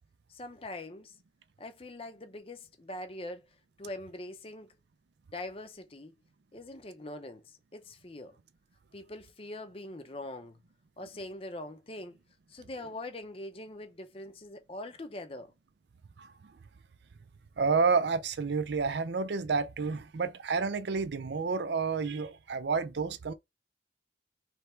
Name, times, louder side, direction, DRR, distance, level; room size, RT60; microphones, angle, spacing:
voice 1, 0.3-1.2 1.6-3.5 3.8-4.8 5.3-6.1 6.5-8.4 8.9-10.6 11.0-12.2 12.5-15.5, left 1 dB, 30° left, 0.6 m, -43 dB
voice 2, 16.2-16.5 17.6-23.3, right 4 dB, 65° right, 0.5 m, -30 dB
3.4 x 3.3 x 4.4 m
head